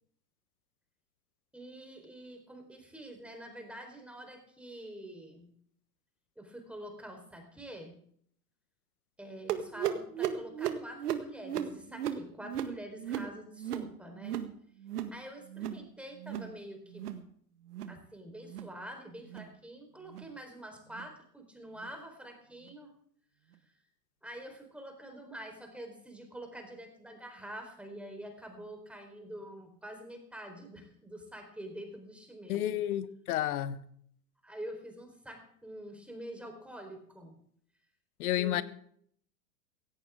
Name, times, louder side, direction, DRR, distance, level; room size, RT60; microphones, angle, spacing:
voice 1, 1.5-5.5 6.4-8.0 9.2-14.4 15.1-17.1 17.9-22.9 24.2-32.8 34.4-37.4 38.3-38.6, right 1 dB, ahead, 4.1 m, -46 dB
sound 1, 9.5-14.5 14.8-15.2 15.5-15.9 16.2-16.5 16.9-17.3 17.7-18.0 18.4-18.7 19.2-19.5 20.1-20.3 20.9-21.1 21.8-21.9 22.7-22.8, right 9 dB, 70° right, 1.7 m, -36 dB
voice 2, 32.5-33.8 38.2-38.6, left 12 dB, 65° left, 1.2 m, -31 dB
17.0 x 16.0 x 3.7 m
hypercardioid pair, 105°, 48 cm